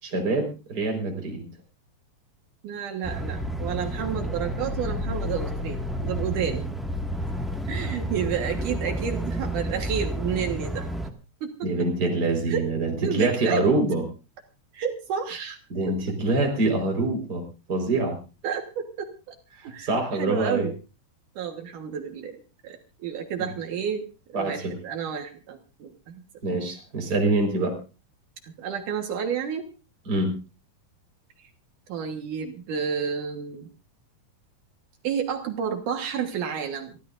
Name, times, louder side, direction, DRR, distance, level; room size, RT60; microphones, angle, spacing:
voice 1, 0.0-1.4 11.6-14.0 15.7-17.4 17.7-18.2 19.5-20.7 23.4-23.5 24.3-24.7 26.4-27.8 30.0-30.4, right 2 dB, 30° right, 2 dB, 4.9 m, -25 dB
voice 2, 2.6-6.6 7.7-10.9 11.4-11.5 12.5-12.7 13.0-13.6 14.7-15.6 15.9-16.0 18.4-19.3 19.6-20.7 21.4-24.1 24.3-26.2 28.4-29.7 31.9-33.7 35.0-36.9, right 7 dB, 70° right, 4 dB, 3.0 m, -30 dB
sound 1, 3.0-11.1, equal, ahead, 0.5 m, -30 dB
24.0 x 15.5 x 2.6 m, 0.33 s
omnidirectional pair, 3.8 m